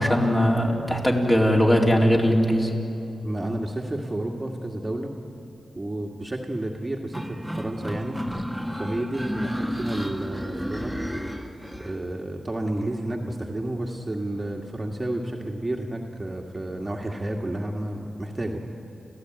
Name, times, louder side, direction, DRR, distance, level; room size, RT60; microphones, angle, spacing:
voice 1, 0.0-2.7, equal, 20° left, -1 dB, 4.1 m, -20 dB
voice 2, 3.2-5.1 5.8-8.2 8.7-10.9 11.8-18.6, right 1 dB, 20° right, 1 dB, 2.0 m, -31 dB
sound 1, 7.1-11.9, equal, ahead, 1.8 m, -32 dB
30.0 x 15.5 x 9.4 m, 2.8 s
cardioid pair, 65°, 0 cm